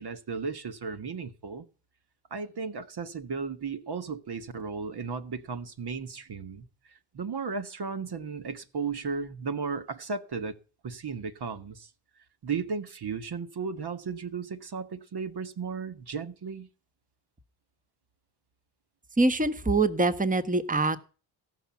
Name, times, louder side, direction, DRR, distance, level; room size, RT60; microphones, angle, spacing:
voice 1, 0.0-1.6 2.3-10.6 10.8-11.9 12.4-16.7, right 5 dB, 50° right, 1.5 m, -35 dB
voice 2, 19.2-21.0, right 2 dB, 15° right, 1.4 m, -24 dB
15.5 x 6.2 x 7.2 m
hypercardioid pair, 40°, 50 cm